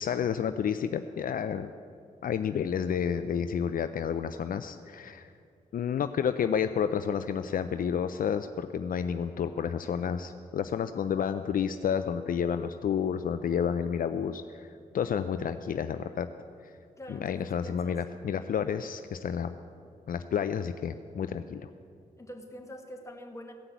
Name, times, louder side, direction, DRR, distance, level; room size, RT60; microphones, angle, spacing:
voice 1, 0.0-1.7 2.2-5.3 5.7-16.3 17.1-19.5 20.1-21.7, left 7 dB, 65° left, 10 dB, 0.5 m, -30 dB
voice 2, 17.0-18.0 21.3-21.6 22.2-23.5, equal, 20° left, 2 dB, 1.8 m, -45 dB
16.0 x 5.9 x 8.2 m, 2.3 s
cardioid pair, 75°, 15 cm